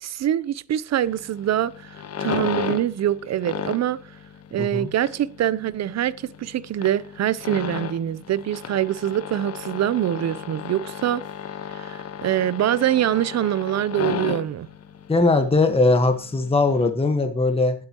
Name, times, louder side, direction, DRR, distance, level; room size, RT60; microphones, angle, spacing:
voice 1, 0.0-1.9 2.2-4.0 4.5-11.2 11.7-14.7, right 11 dB, 60° right, 0.7 m, -24 dB
sound 1, 1.0-16.9, left 8 dB, 55° left, 1.2 m, -34 dB
voice 2, 4.6-4.9 15.1-17.7, left 3 dB, 20° left, 1.4 m, -20 dB
21.0 x 8.6 x 3.0 m
cardioid pair, 90°, 30 cm